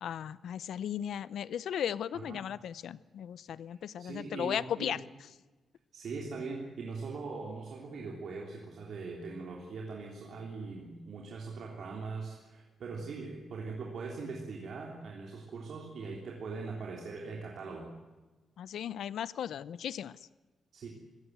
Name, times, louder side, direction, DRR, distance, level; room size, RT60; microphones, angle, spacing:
voice 1, 0.0-5.0 18.6-20.2, left 9 dB, 75° left, 18 dB, 0.6 m, -36 dB
voice 2, 2.1-2.5 4.0-5.0 5.9-17.9 20.7-20.9, right 4 dB, 55° right, -1 dB, 3.3 m, -41 dB
25.5 x 17.5 x 8.1 m, 1.2 s
wide cardioid pair, 175°, 0 cm